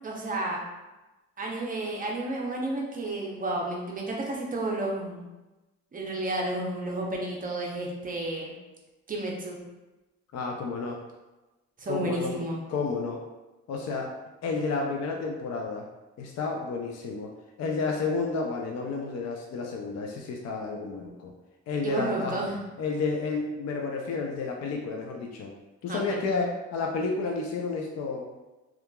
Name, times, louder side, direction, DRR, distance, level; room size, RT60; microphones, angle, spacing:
voice 1, 0.0-0.6 1.4-5.3 5.9-8.5 9.1-9.6 11.8-12.6 21.8-22.6 25.9-26.2, right 2 dB, 30° right, -2 dB, 0.6 m, -31 dB
voice 2, 10.3-11.0 11.9-12.4 12.7-13.3 13.7-14.2 14.4-15.9 16.2-17.3 17.6-21.3 21.7-22.4 22.8-25.5 25.8-28.3, left 4 dB, 60° left, 1 dB, 0.5 m, -31 dB
2.8 x 2.4 x 2.2 m, 1.1 s
cardioid pair, 90°, 30 cm